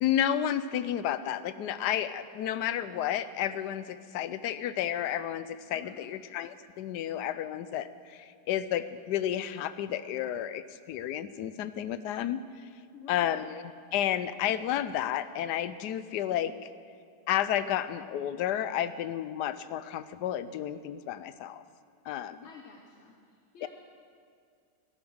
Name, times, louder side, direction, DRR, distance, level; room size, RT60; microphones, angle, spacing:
voice 1, 0.0-12.4 13.1-16.5 17.3-21.6 22.1-22.5 23.6-23.7, left 10 dB, 80° left, 14 dB, 1.2 m, -31 dB
voice 2, 5.7-6.2 12.9-13.3 22.4-23.2 23.5-23.7, left 5 dB, 50° left, 1 dB, 1.1 m, -51 dB
16.5 x 9.7 x 6.2 m, 2.2 s
omnidirectional pair, 1.8 m